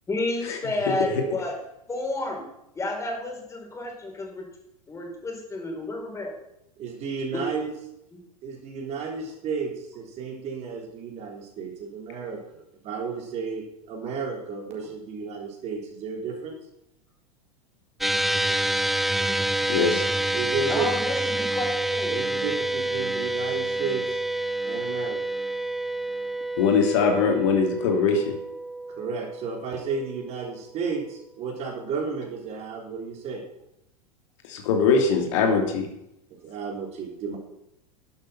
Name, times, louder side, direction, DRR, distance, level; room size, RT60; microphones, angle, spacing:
voice 1, 0.1-1.5 1.9-2.4 2.7-4.5 4.9-6.3 7.3-7.4 8.1-8.2 14.0-14.1 20.7-22.2, left 2 dB, 15° left, 1 dB, 4.7 m, -31 dB
voice 2, 6.8-7.7 8.4-13.6 13.9-16.6 20.3-20.9 22.1-24.0 24.6-25.2 29.0-33.4 36.4-37.4, right 5 dB, 35° right, 0 dB, 3.7 m, -32 dB
sound 1, 18.0-30.5, right 1 dB, ahead, 0.4 m, -28 dB
voice 3, 19.7-20.0 26.6-28.3 34.5-35.9, left 5 dB, 55° left, 3 dB, 2.6 m, -22 dB
12.0 x 11.5 x 5.8 m, 0.80 s
figure-of-eight pair, 90°, 19 cm